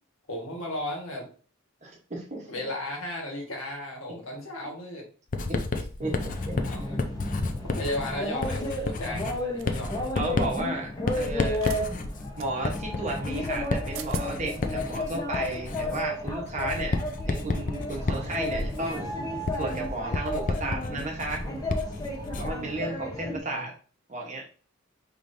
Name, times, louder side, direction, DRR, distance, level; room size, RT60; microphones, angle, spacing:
voice 1, 0.3-1.3 2.5-5.0 6.6-7.0 7.7-10.1 23.3-23.7, left 1 dB, 75° left, -1 dB, 1.6 m, -35 dB
voice 2, 1.8-2.5 5.5-6.5 10.1-11.6 12.4-17.0 17.3-19.1 19.6-21.4 22.4-23.7 24.1-24.4, right 2 dB, 35° right, 0 dB, 1.0 m, -33 dB
Writing, 5.3-22.7, left 3 dB, 40° left, 0.5 m, -31 dB
sound 1, 6.0-23.4, left 1 dB, 20° left, 0.9 m, -34 dB
sound 2, 9.6-9.8 11.5-11.8 12.4-12.5 13.6-13.7 13.9-14.3, right 11 dB, 70° right, 0.4 m, -40 dB
5.1 x 3.1 x 2.7 m, 0.40 s
head